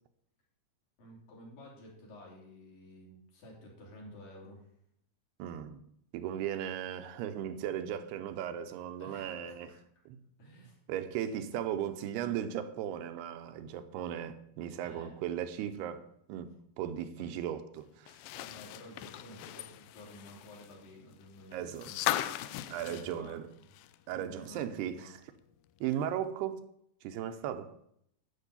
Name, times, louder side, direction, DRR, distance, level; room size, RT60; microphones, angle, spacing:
voice 1, 1.0-4.7 9.0-9.8 10.4-10.8 14.8-15.2 17.2-17.3 18.3-22.2 22.8-23.4 24.1-24.6 24.9-25.1 27.2-27.3, left 1 dB, 60° left, 4.6 m, -52 dB
voice 2, 5.4-5.8 6.1-9.7 10.1-10.2 10.9-18.2 21.5-21.9 22.7-23.5 24.1-25.2 25.8-26.6 27.0-27.7, right 10 dB, 85° right, 2.8 m, -37 dB
sound 1, 18.1-24.1 24.5-24.6 25.9-26.0, left 14 dB, 90° left, 2.0 m, -38 dB
12.0 x 5.5 x 8.3 m
omnidirectional pair, 4.6 m